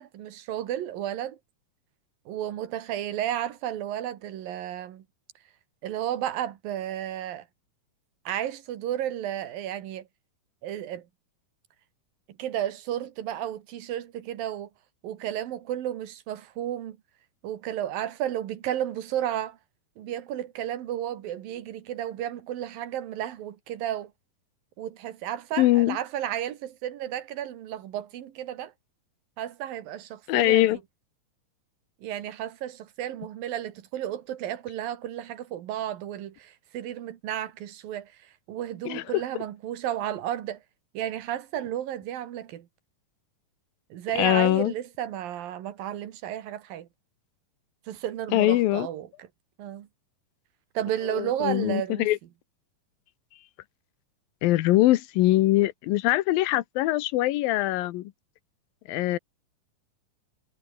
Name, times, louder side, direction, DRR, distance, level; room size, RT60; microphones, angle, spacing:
voice 1, 0.0-1.4 2.3-5.0 5.8-7.5 8.3-10.1 10.6-11.1 12.4-14.7 15.0-17.0 17.4-19.6 20.0-24.1 24.8-28.7 29.4-30.8 32.0-38.1 38.5-40.6 41.0-42.7 43.9-46.9 47.9-49.3 49.6-49.9 50.8-52.1, right 11 dB, 75° right, 3.4 m, -33 dB
voice 2, 25.6-26.0 30.3-30.8 38.9-39.2 44.2-44.7 48.3-48.9 51.1-52.2 54.4-58.1 58.9-59.2, left 16 dB, 80° left, 2.6 m, -22 dB
omnidirectional pair, 4.1 m